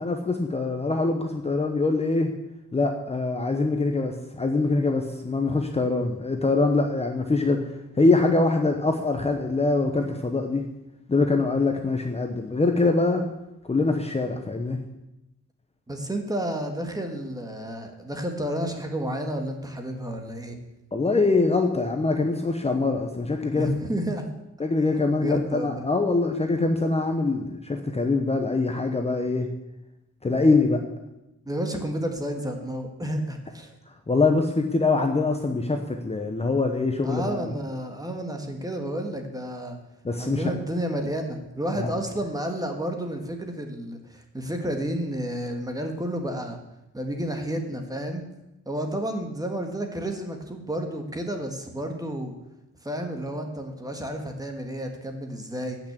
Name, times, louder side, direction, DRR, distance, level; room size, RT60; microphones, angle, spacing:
voice 1, 0.0-2.3 2.7-7.7 8.0-10.6 11.1-13.3 13.6-14.8 20.9-23.7 24.6-29.5 30.2-30.8 34.1-37.5 40.0-40.4 41.8-41.9, left 3 dB, 20° left, 4 dB, 1.0 m, -23 dB
voice 2, 15.9-20.6 23.5-24.3 25.2-25.9 31.4-33.7 37.0-39.8 40.2-46.6 46.9-48.2 48.6-52.3 52.8-55.8, right 1 dB, 10° right, 4 dB, 1.6 m, -31 dB
15.5 x 6.2 x 8.1 m, 0.92 s
wide cardioid pair, 170°, 29 cm